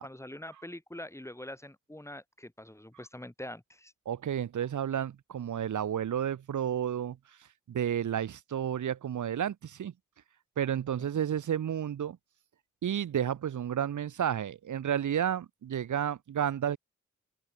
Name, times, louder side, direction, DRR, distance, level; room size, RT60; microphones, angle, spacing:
voice 1, 0.0-3.9, left 1 dB, 10° left, 4.3 m, -44 dB
voice 2, 4.0-7.2 7.7-9.9 10.6-12.2 12.8-16.8, right 9 dB, 80° right, 1.7 m, -31 dB
open air
cardioid pair, 50°, 30 cm